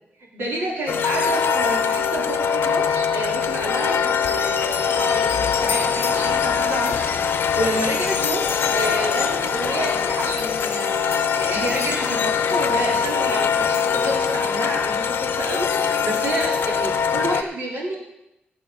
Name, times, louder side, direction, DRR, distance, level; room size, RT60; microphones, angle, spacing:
voice 1, 0.3-7.1 7.4-18.0, right 1 dB, 80° right, -3 dB, 3.6 m, -29 dB
sound 1, 0.9-17.4, left 7 dB, 75° left, 0.6 m, -22 dB
17.0 x 7.4 x 4.0 m, 0.88 s
wide cardioid pair, 165°, 4 cm